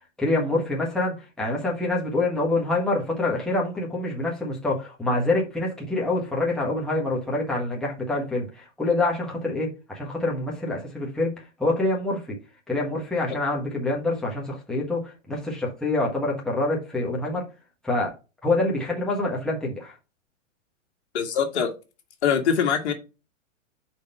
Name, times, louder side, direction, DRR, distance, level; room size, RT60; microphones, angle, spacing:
voice 1, 0.2-12.4 12.7-17.4 17.8-18.1 18.4-19.9, left 2 dB, ahead, 1.4 m, -26 dB
voice 2, 21.1-21.7 22.2-22.9, left 7 dB, 60° left, 1.8 m, -23 dB
5.1 x 4.5 x 5.4 m
hypercardioid pair, 145°, 38 cm